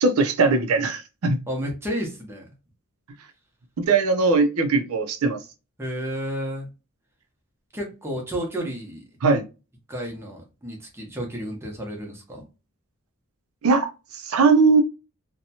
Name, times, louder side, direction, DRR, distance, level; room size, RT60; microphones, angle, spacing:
voice 1, 0.0-1.4 3.8-5.4 9.2-9.4 13.6-13.9 14.2-14.8, right 4 dB, 80° right, 0.5 m, -19 dB
voice 2, 1.5-2.4 5.8-6.7 7.7-9.0 9.9-12.5, equal, 10° right, 0.7 m, -31 dB
2.7 x 2.2 x 2.7 m
head